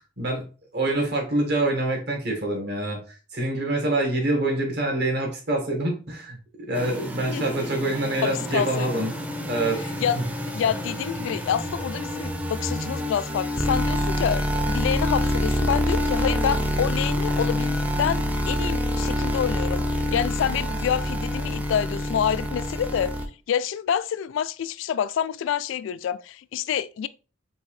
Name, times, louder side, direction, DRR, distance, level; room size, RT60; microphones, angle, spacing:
voice 1, 0.2-3.0 3.3-9.1 9.5-9.8 10.1-10.2, right 2 dB, 60° right, 1.6 m, -26 dB
sound 1, 6.7-23.3, equal, 10° right, 0.5 m, -27 dB
voice 2, 8.2-9.0 10.0-10.2 10.5-23.1 23.5-27.1, left 8 dB, 80° left, 0.3 m, -27 dB
4.5 x 3.4 x 3.2 m
head